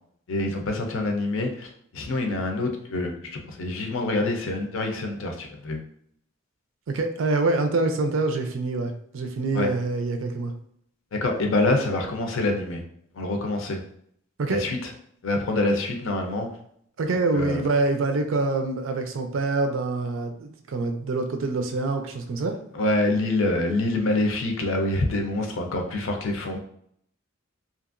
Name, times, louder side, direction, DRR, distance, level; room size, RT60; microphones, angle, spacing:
voice 1, 0.3-5.8 9.5-9.7 11.1-12.8 13.1-13.8 14.5-14.9 15.2-16.5 17.3-17.6 22.7-26.6, left 2 dB, 80° left, 3 dB, 0.5 m, -26 dB
voice 2, 6.9-10.5 14.4-14.6 17.0-22.6, right 3 dB, 75° right, 6 dB, 0.4 m, -25 dB
2.9 x 2.4 x 2.5 m, 0.68 s
head